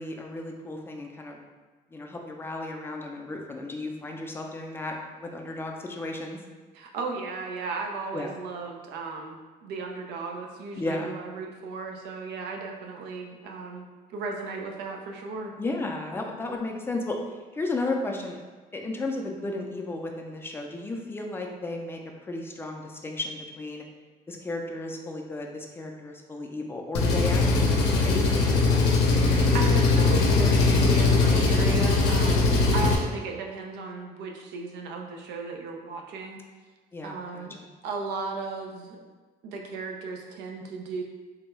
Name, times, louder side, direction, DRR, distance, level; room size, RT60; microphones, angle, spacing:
voice 1, 0.0-1.4 1.9-6.4 8.1-8.3 10.8-11.1 15.6-17.2 17.5-18.4 18.7-23.8 24.3-28.9 32.4-32.8 36.9-37.7, left 2 dB, 15° left, 1 dB, 0.4 m, -34 dB
voice 2, 6.7-15.5 29.3-36.4 37.0-37.6 37.8-39.0 39.4-41.0, right 4 dB, 80° right, 2 dB, 0.5 m, -35 dB
Engine, 26.9-33.0, left 3 dB, 85° left, 0.5 m, -21 dB
3.5 x 2.2 x 3.0 m, 1.3 s
cardioid pair, 110°, 17 cm